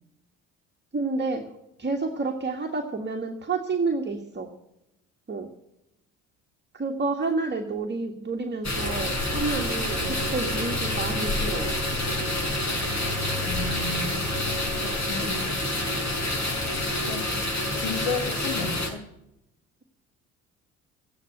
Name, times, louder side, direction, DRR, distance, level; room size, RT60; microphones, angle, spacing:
voice 1, 0.9-1.5 1.8-4.5 5.3-5.5 6.7-11.8 15.2-15.4 17.3-17.4, right 3 dB, 25° right, 2 dB, 1.8 m, -29 dB
sound 1, 8.6-18.9, left 1 dB, 40° left, 5.9 m, -28 dB
voice 2, 13.4-14.3 14.7-15.5 17.0-17.3 17.8-19.0, left 4 dB, 80° left, 8 dB, 1.7 m, -33 dB
14.0 x 9.8 x 8.0 m, 0.85 s
hypercardioid pair, 55°, 41 cm